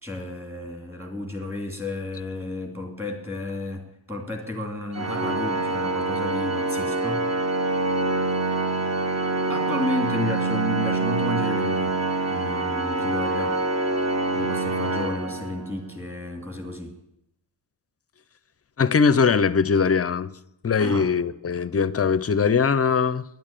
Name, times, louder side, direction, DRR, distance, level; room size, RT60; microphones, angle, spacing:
voice 1, 0.0-7.2 9.5-12.0 12.3-13.6 14.3-17.0 20.8-21.1, left 2 dB, 5° right, 2.7 m, -32 dB
Organ, 4.9-15.9, right 2 dB, 30° right, 1.0 m, -25 dB
voice 2, 18.8-20.3 20.6-23.2, left 5 dB, 30° left, 0.5 m, -21 dB
10.5 x 8.7 x 8.9 m
wide cardioid pair, 140°, 48 cm